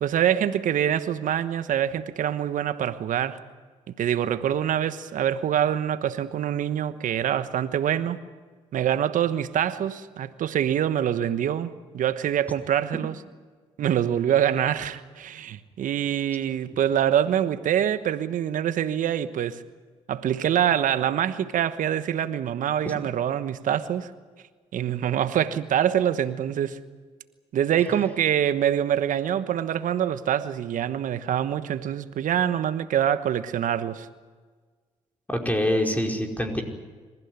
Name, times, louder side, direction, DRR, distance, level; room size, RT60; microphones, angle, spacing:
voice 1, 0.0-3.4 4.0-8.2 8.7-13.1 13.8-19.6 20.1-24.1 24.7-26.8 27.5-34.1, right 10 dB, 70° right, 1.2 m, -25 dB
voice 2, 35.3-36.6, left 1 dB, 10° left, 5.0 m, -25 dB
27.0 x 15.5 x 9.7 m
hypercardioid pair, 45°, 14 cm